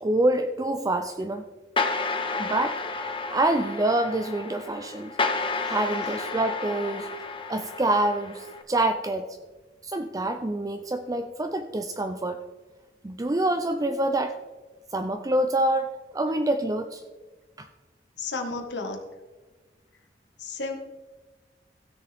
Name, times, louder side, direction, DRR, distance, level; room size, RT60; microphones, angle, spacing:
voice 1, 0.0-1.4 2.4-2.8 3.3-5.1 5.7-7.1 7.5-9.3 9.8-12.4 13.0-14.3 14.9-17.0 17.6-17.7, right 1 dB, 20° right, 6 dB, 0.5 m, -26 dB
sound 1, 1.8-8.6, left 3 dB, 30° left, 0.9 m, -31 dB
voice 2, 18.2-19.0 20.4-20.8, left 3 dB, 85° left, 3 dB, 1.6 m, -32 dB
16.0 x 6.9 x 3.5 m, 1.3 s
head